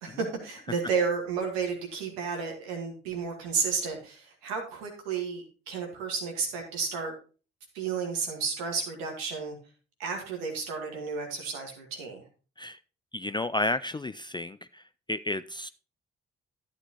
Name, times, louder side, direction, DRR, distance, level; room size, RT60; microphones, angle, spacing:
voice 1, 0.0-7.1 7.7-9.6 10.0-12.2, right 5 dB, 85° right, 3 dB, 1.6 m, -32 dB
voice 2, 13.1-14.8 15.1-15.7, left 2 dB, 15° left, 13 dB, 0.3 m, -31 dB
11.5 x 8.1 x 2.9 m, 0.36 s
hypercardioid pair, 40°, 29 cm